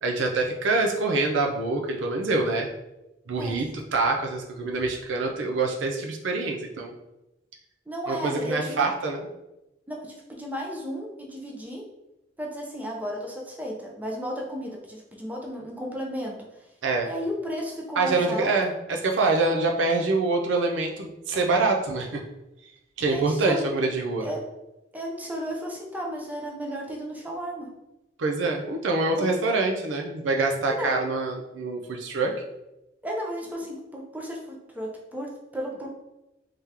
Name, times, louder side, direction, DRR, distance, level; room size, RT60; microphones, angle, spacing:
voice 1, 0.0-2.7 3.3-6.9 8.1-9.2 16.8-17.1 18.0-22.2 23.0-24.3 28.2-32.4, right 3 dB, 80° right, 1 dB, 0.5 m, -25 dB
voice 2, 7.9-8.8 9.9-11.8 12.4-16.6 17.0-18.5 23.1-23.7 24.2-24.4 24.9-27.7 29.2-29.3 30.7-30.9 33.0-35.9, equal, 10° right, -1 dB, 0.6 m, -34 dB
3.6 x 3.3 x 2.8 m, 0.95 s
head